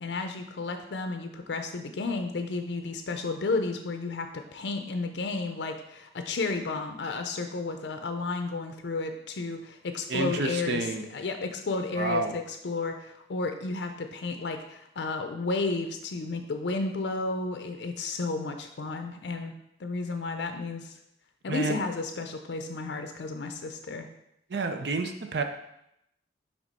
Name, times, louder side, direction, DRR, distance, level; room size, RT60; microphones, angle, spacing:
voice 1, 0.0-19.5 19.8-20.9 21.4-24.1, left 3 dB, 70° left, 6 dB, 0.5 m, -32 dB
voice 2, 10.1-11.0 12.0-12.3 21.5-21.8 24.5-25.4, right 3 dB, 65° right, 6 dB, 0.5 m, -29 dB
5.0 x 3.5 x 5.4 m, 0.81 s
head